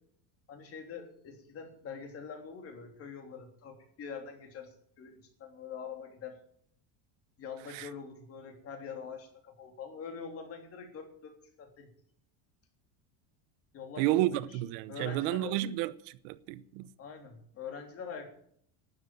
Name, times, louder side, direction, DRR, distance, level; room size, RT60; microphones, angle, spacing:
voice 1, 0.5-6.4 7.4-11.9 13.7-14.6 14.9-15.6 17.0-18.3, left 6 dB, 35° left, 3.4 m, -44 dB
voice 2, 14.0-16.9, right 15 dB, 70° right, 0.9 m, -31 dB
12.5 x 9.8 x 9.2 m
cardioid pair, 155°, 38 cm